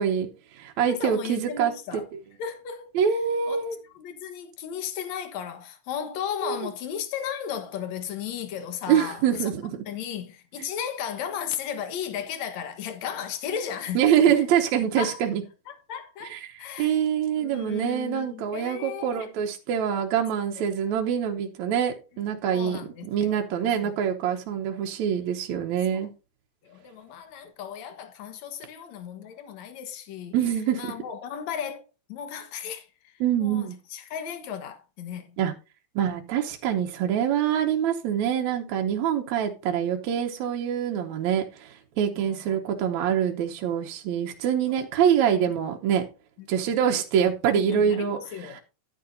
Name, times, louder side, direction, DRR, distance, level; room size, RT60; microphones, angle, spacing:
voice 1, 0.0-2.0 2.9-3.8 6.4-6.7 8.9-9.8 14.0-15.4 16.2-26.1 30.3-30.9 33.2-33.8 35.4-35.5 36.0-46.0 46.5-48.6, right 8 dB, 70° right, 2.1 m, -25 dB
voice 2, 0.9-2.0 2.4-2.9 3.5-3.6 4.0-9.5 9.9-14.3 15.0-15.2 15.7-17.0 17.4-19.3 22.5-23.5 23.8-24.0 25.9-26.1 26.6-30.3 30.8-33.1 33.4-35.4 42.2-42.6 47.5-48.6, left 8 dB, 65° left, 2.4 m, -35 dB
11.0 x 9.7 x 2.6 m
omnidirectional pair, 3.7 m